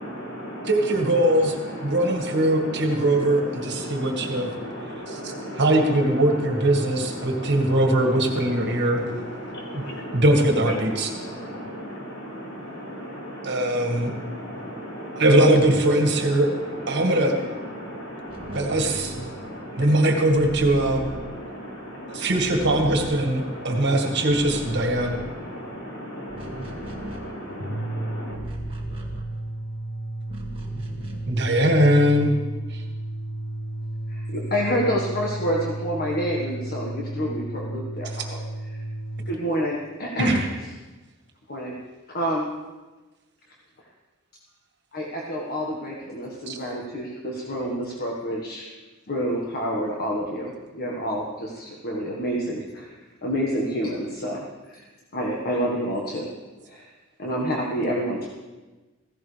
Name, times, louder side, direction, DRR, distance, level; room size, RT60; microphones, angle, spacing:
voice 1, 0.0-28.4, equal, 65° left, -3 dB, 4.8 m, -36 dB
voice 2, 0.7-1.6 1.8-4.5 5.1-9.0 9.7-9.8 10.1-11.1 13.4-14.1 15.2-16.5 16.9-17.3 18.5-19.1 19.8-21.1 22.1-25.2 31.3-32.4 32.7-32.8 40.2-40.4 46.5-46.6, right 1 dB, 55° right, 2 dB, 1.9 m, -21 dB
sound 1, 18.2-21.9 22.1-23.8 24.1-29.8 30.2-31.5, equal, 25° right, 1.9 m, -39 dB
sound 2, 27.5-39.4, right 1 dB, 80° left, 1.0 m, -33 dB
voice 3, 34.1-38.4 38.7-38.8 39.2-40.4 41.5-41.7 42.1-42.4 44.9-48.7 49.1-52.9 53.2-54.8 55.1-56.3 56.7-56.9 57.2-58.3, equal, 50° left, -2 dB, 1.6 m, -28 dB
16.0 x 15.5 x 3.4 m, 1.2 s
head